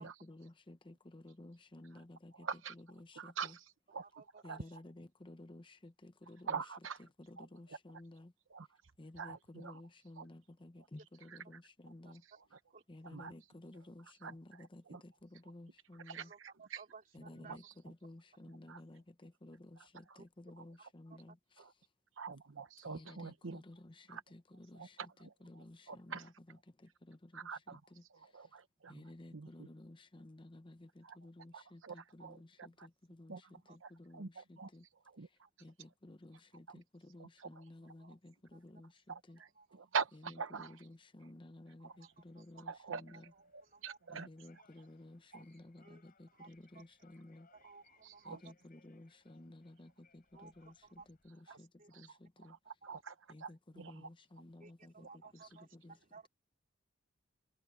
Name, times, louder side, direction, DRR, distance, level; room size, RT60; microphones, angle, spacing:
voice 1, 0.0-3.6 4.4-6.6 7.0-8.3 9.0-12.2 12.9-16.3 17.1-21.7 22.8-28.6 28.9-34.9 35.2-39.4 40.1-43.3 44.1-47.5 48.2-52.6 53.3-56.0, left 1 dB, 25° left, 0.8 m, -55 dB
voice 2, 2.4-2.7 3.2-4.6 6.5-7.0 7.4-7.5 8.5-8.7 9.2-9.8 10.2-10.3 13.0-13.3 14.2-15.0 16.1-16.8 17.6-17.7 18.7-18.8 20.1-20.2 20.6-20.7 21.6-21.7 22.2-23.6 24.1-24.2 24.8-26.3 27.3-27.8 28.1-29.0 29.3-29.5 31.0-31.2 31.5-32.9 33.3-33.4 33.8-34.7 35.1-35.3 36.7-36.8 37.2-37.6 39.1-40.9 41.8-41.9 42.7-43.2 43.5-44.3 45.3-45.4 48.0-48.4 51.5-51.6 51.9-52.1 52.4-54.1, right 6 dB, 70° right, 0.9 m, -45 dB
voice 3, 4.2-4.8 12.0-12.1 12.7-12.8 16.2-17.6 21.1-21.2 33.7-33.8 38.0-38.1 38.5-38.6 39.4-39.7 42.0-42.4 43.3-44.0 45.8-46.0 46.3-46.9 47.5-48.5 50.3-51.1 51.5-51.9 52.8-53.0 54.6-56.3, right 4 dB, 45° right, 3.2 m, -58 dB
sound 1, 41.9-51.3, left 5 dB, 45° left, 5.2 m, -72 dB
head